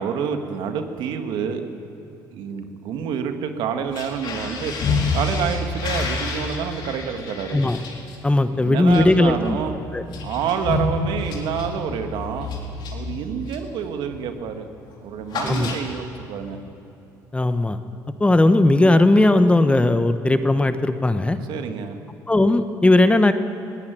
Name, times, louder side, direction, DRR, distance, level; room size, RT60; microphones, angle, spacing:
voice 1, 0.0-1.6 2.3-4.7 5.1-7.6 8.5-9.8 10.2-12.5 12.9-14.7 15.0-16.6 21.5-22.0, right 7 dB, 70° right, 6 dB, 1.9 m, -28 dB
sound 1, 3.8-13.8 14.1-14.4 14.6-16.2, left 3 dB, 60° left, 4.3 m, -29 dB
voice 2, 8.2-9.6 9.9-10.0 15.4-15.7 17.3-17.8 18.2-21.4 22.3-23.3, left 2 dB, 15° left, 10 dB, 1.2 m, -17 dB
20.5 x 17.5 x 9.2 m, 2.9 s
supercardioid pair, 75°, 8 cm